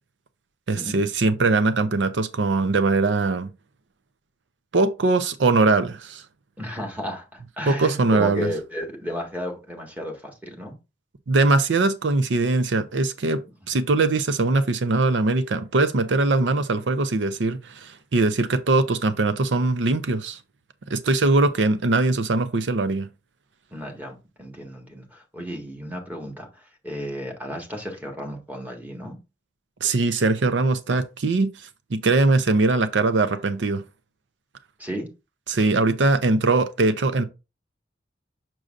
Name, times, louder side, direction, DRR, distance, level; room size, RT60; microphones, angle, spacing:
voice 1, 0.7-3.5 4.7-6.2 7.7-8.5 11.3-13.4 13.7-20.4 20.9-23.1 29.8-33.8 35.5-37.2, right 3 dB, 80° right, 0.6 m, -21 dB
voice 2, 6.6-10.8 23.7-29.2 34.8-35.1, equal, 10° right, 1.6 m, -33 dB
6.4 x 6.1 x 2.5 m
head